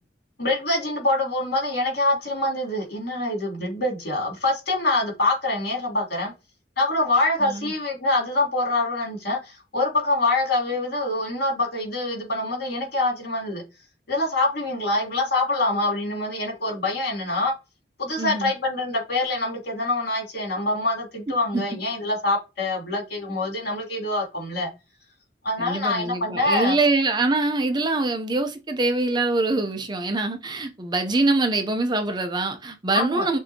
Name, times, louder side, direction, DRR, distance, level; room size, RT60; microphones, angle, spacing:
voice 1, 0.4-6.3 6.8-13.6 14.1-17.5 18.0-24.7 25.4-26.8 32.9-33.3, left 2 dB, 55° left, 2.7 m, -25 dB
voice 2, 7.4-7.7 18.2-18.5 21.5-21.6 25.6-33.4, right 2 dB, 25° right, 0.5 m, -24 dB
6.5 x 2.7 x 2.7 m
head